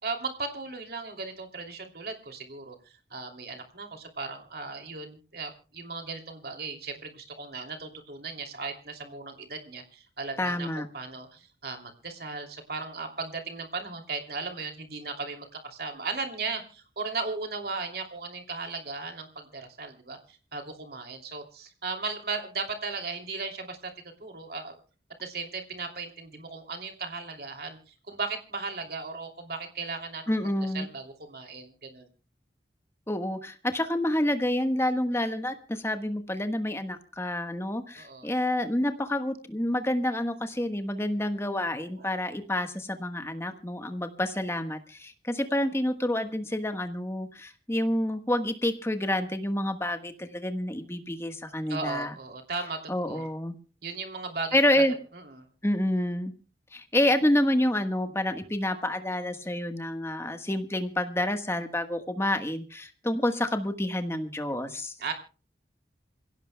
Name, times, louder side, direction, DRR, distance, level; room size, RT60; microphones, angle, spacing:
voice 1, 0.0-24.7 25.2-30.5 30.7-32.1 38.0-38.3 42.0-42.1 51.7-52.8 53.0-53.3 53.8-54.8 55.1-55.5 65.0-65.1, right 4 dB, 60° right, 4 dB, 2.9 m, -37 dB
voice 2, 10.4-10.9 30.3-30.9 33.1-52.1 52.9-53.5 54.5-54.9 55.6-56.3 56.7-64.9, left 1 dB, 15° left, 7 dB, 1.3 m, -28 dB
27.5 x 16.5 x 2.2 m, 0.38 s
head